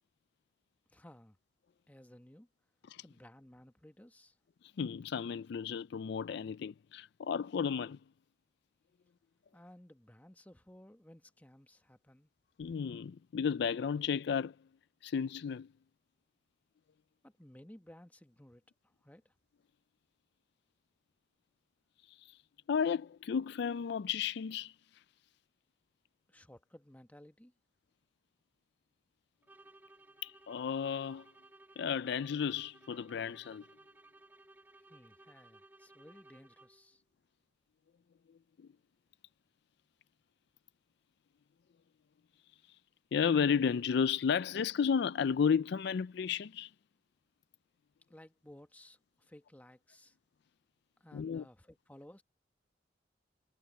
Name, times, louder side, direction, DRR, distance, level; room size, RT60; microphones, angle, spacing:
voice 1, 0.9-1.4 1.9-2.5 3.0-4.4 9.5-12.3 17.2-19.3 26.3-27.5 34.9-37.0 48.1-50.2 51.0-52.2, left 1 dB, 10° left, 1.3 m, -57 dB
voice 2, 4.8-8.0 12.6-14.5 15.0-15.7 22.1-22.3 22.7-24.7 30.2-31.3 31.8-33.6 43.1-46.7 51.1-51.4, left 6 dB, 65° left, 0.4 m, -33 dB
sound 1, 29.4-37.0, right 2 dB, 10° right, 1.9 m, -60 dB
head